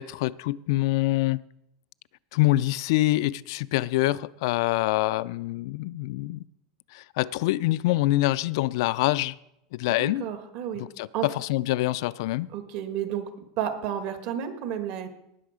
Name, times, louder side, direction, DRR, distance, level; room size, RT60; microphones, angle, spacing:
voice 1, 0.0-1.4 2.3-6.4 6.9-9.4 9.7-10.2 11.0-12.5, left 17 dB, 65° left, 0.3 m, -25 dB
voice 2, 10.0-10.8 11.1-11.3 12.5-13.3 13.6-15.1, right 9 dB, 50° right, 1.4 m, -31 dB
18.5 x 6.3 x 4.9 m
supercardioid pair, 150°, 3 cm